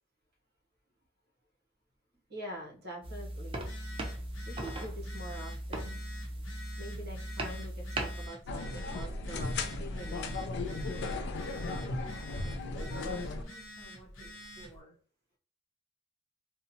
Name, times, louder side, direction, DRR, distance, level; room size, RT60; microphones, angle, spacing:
voice 1, 2.3-3.6 4.5-6.0 6.8-10.6, equal, 55° right, -1 dB, 0.8 m, -45 dB
sound 1, 3.0-8.3, right 1 dB, 25° right, 0.4 m, -38 dB
Telephone, 3.5-14.8, left 1 dB, 75° left, 0.7 m, -49 dB
sound 2, 8.5-13.4, left 2 dB, 60° left, 0.3 m, -36 dB
voice 2, 11.4-12.6 13.0-15.0, right 1 dB, 20° left, 0 dB, 0.6 m, -53 dB
2.7 x 2.1 x 2.6 m, 0.41 s
head